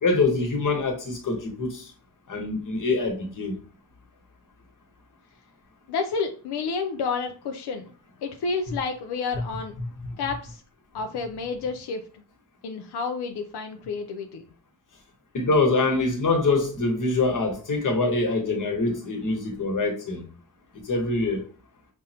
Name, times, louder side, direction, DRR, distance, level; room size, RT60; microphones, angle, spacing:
voice 1, 0.0-1.8 2.3-3.6 15.3-20.3 20.8-21.4, left 3 dB, 55° left, 1.1 m, -24 dB
voice 2, 5.9-7.9 8.2-9.7 10.2-10.6 10.9-12.0 12.6-14.4, left 4 dB, 90° left, 0.5 m, -30 dB
5.2 x 2.0 x 2.7 m
cardioid pair, 80°, 38 cm